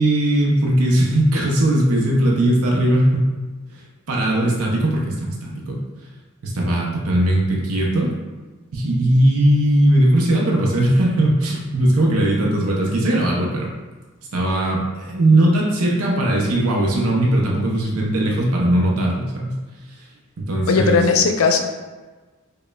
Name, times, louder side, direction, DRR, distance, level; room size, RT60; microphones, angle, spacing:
voice 1, 0.0-3.3 3.7-5.8 6.4-8.2 8.7-13.7 14.3-19.5 20.4-21.0, right 1 dB, 85° right, -2 dB, 0.6 m, -19 dB
voice 2, 20.7-21.6, left 5 dB, 75° left, 4 dB, 0.4 m, -17 dB
5.0 x 2.2 x 2.2 m, 1.3 s
head